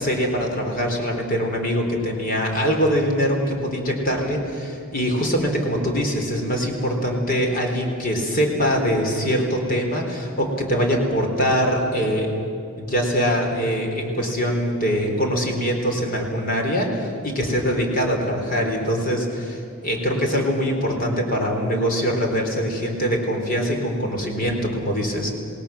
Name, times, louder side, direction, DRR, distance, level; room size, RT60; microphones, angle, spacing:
voice 1, 0.0-12.3 12.8-25.3, equal, 40° left, 2 dB, 4.3 m, -23 dB
27.5 x 19.0 x 7.4 m, 2.6 s
head